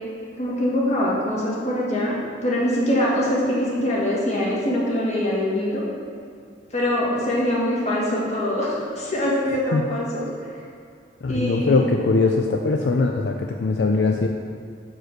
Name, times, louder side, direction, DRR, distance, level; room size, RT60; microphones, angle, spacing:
voice 1, 0.4-5.8 6.7-10.2 11.3-11.8, left 1 dB, 40° left, -5 dB, 1.8 m, -23 dB
voice 2, 11.2-14.3, left 3 dB, 75° left, 3 dB, 0.4 m, -21 dB
6.0 x 5.2 x 6.5 m, 2.2 s
head